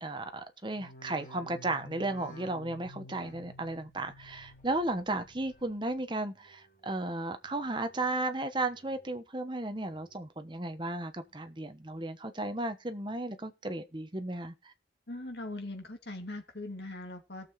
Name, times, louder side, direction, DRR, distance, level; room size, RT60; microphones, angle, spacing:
voice 1, 0.0-14.7, right 2 dB, 25° right, 1.1 m, -34 dB
sound 1, 0.7-6.0 6.4-7.0 7.4-8.1 8.5-9.2 9.6-10.3 10.8-11.3 11.9-12.0, equal, 45° left, 4.2 m, -53 dB
voice 2, 15.1-17.5, left 2 dB, 70° left, 2.9 m, -41 dB
18.0 x 6.9 x 4.2 m
head